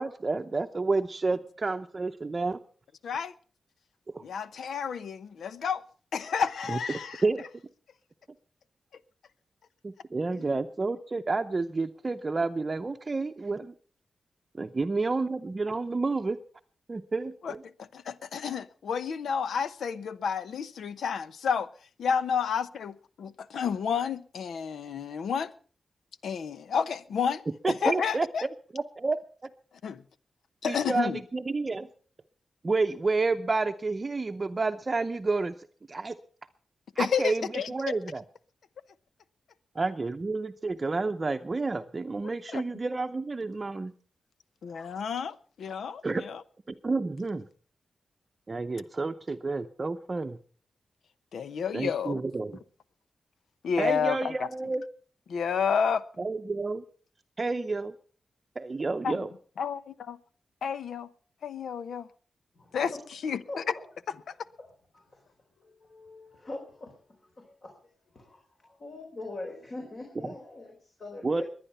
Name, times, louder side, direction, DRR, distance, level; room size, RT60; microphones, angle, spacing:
voice 1, 0.0-2.6 4.1-4.2 6.7-7.4 9.8-13.7 14.6-16.4 16.9-17.6 27.6-28.3 28.7-29.2 30.6-31.9 32.6-35.6 35.9-36.2 37.0-38.2 39.8-43.9 46.0-46.2 46.7-47.4 48.5-50.4 51.7-52.6 53.8-54.8 56.2-56.8 57.4-57.9 58.6-59.3 71.2-71.4, right 3 dB, 35° right, 0.7 m, -30 dB
voice 2, 3.0-3.3 4.2-5.8 6.1-7.2 17.4-17.5 17.8-21.7 22.0-22.9 23.2-25.5 26.2-28.4 29.8-30.0 30.6-31.2 37.0-37.7 42.5-42.6 44.6-46.4 51.3-52.2 53.6-54.5 55.3-56.0 59.0-59.2 59.6-60.2 60.6-61.1 61.4-62.1 62.7-62.9 63.2-63.6, left 6 dB, 85° left, 0.8 m, -30 dB
voice 3, 62.5-63.1 63.5-63.8 64.6-68.4 68.8-71.4, left 2 dB, 45° left, 4.2 m, -43 dB
22.0 x 9.8 x 5.6 m
wide cardioid pair, 100°, 0 cm